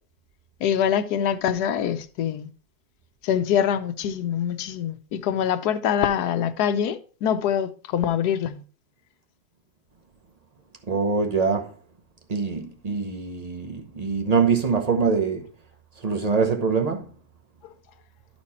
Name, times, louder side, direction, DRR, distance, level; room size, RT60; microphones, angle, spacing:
voice 1, 0.6-2.5 3.2-8.6 17.6-17.7, left 9 dB, 70° left, 1.1 m, -24 dB
voice 2, 10.9-11.7 12.3-15.5 16.0-17.1, right 5 dB, 35° right, 0.6 m, -24 dB
11.5 x 4.5 x 4.2 m
omnidirectional pair, 2.0 m